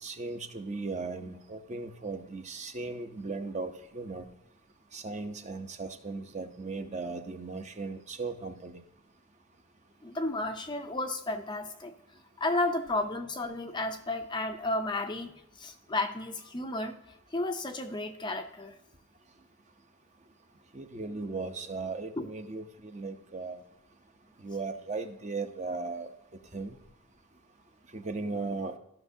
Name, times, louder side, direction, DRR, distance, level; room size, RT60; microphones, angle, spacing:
voice 1, 0.0-4.3 4.9-8.8 20.7-23.6 24.4-26.1 26.5-26.8 27.9-28.8, right 3 dB, 30° right, 7 dB, 0.6 m, -37 dB
voice 2, 10.0-11.9 12.4-17.0 17.3-18.7 22.2-22.3, left 2 dB, 20° left, 6 dB, 0.5 m, -32 dB
13.5 x 5.9 x 2.7 m, 0.88 s
head